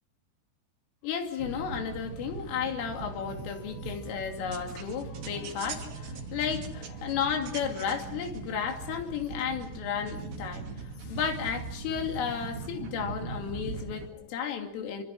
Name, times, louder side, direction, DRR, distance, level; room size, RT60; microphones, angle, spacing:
voice 1, 1.0-15.0, left 7 dB, 80° left, 4 dB, 5.2 m, -33 dB
sound 1, 1.4-14.1, right 4 dB, 60° right, 3.8 m, -40 dB
27.0 x 24.0 x 6.3 m, 0.72 s
omnidirectional pair, 5.8 m